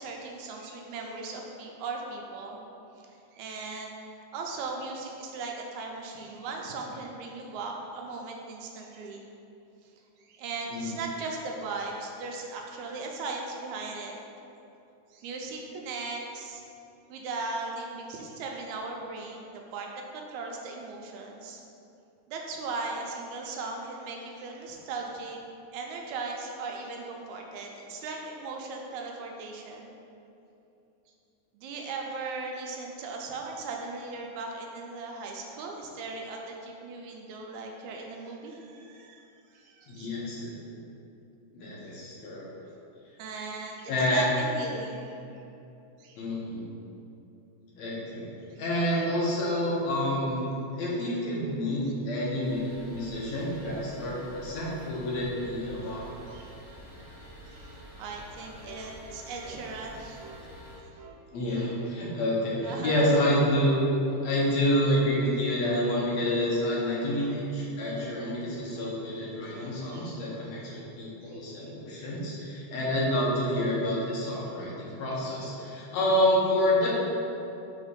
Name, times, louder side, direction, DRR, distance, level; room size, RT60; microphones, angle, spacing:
voice 1, 0.0-2.6 3.0-3.9 4.3-9.3 9.8-9.9 10.2-14.1 15.1-16.6 17.1-19.9 20.1-21.6 22.3-25.4 25.7-29.9 31.5-39.2 39.5-40.1 41.8-42.0 43.2-45.1 46.0-46.3 48.5-48.6 55.8-56.0 56.3-56.5 57.5-60.2 60.8-60.9 62.6-63.2 69.4-70.1 71.2-71.4, right 3 dB, 90° right, 1 dB, 2.1 m, -38 dB
voice 2, 39.9-40.5 41.5-42.4 43.9-44.3 46.2-46.6 47.7-48.3 48.6-56.0 61.3-63.8 64.2-77.0, left 1 dB, 75° left, -5 dB, 2.3 m, -28 dB
sound 1, 52.4-60.8, equal, 25° left, 0.7 m, -48 dB
sound 2, 58.6-58.9 59.4-59.6 60.2-60.4 61.0-61.2 61.7-62.0 62.5-62.8 63.3-63.6 64.1-64.3 64.9-65.1 65.6-65.9 66.4-66.6 67.2-67.5 68.0-68.2 68.8-69.0 69.5-69.8 70.3-70.5, right 3 dB, 70° right, 1.2 m, -49 dB
5.4 x 3.6 x 5.1 m, 2.8 s
omnidirectional pair, 3.3 m